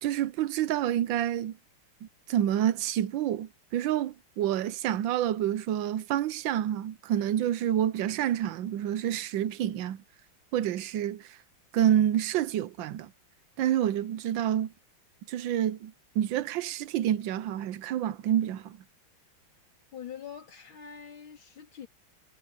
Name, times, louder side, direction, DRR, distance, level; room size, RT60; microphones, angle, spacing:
voice 1, 0.0-1.6 2.0-10.0 10.5-11.3 11.7-13.1 13.6-14.7 15.3-18.8, right 11 dB, 75° right, 1.4 m, -28 dB
voice 2, 19.9-21.9, left 8 dB, 75° left, 3.8 m, -44 dB
omnidirectional pair, 2.2 m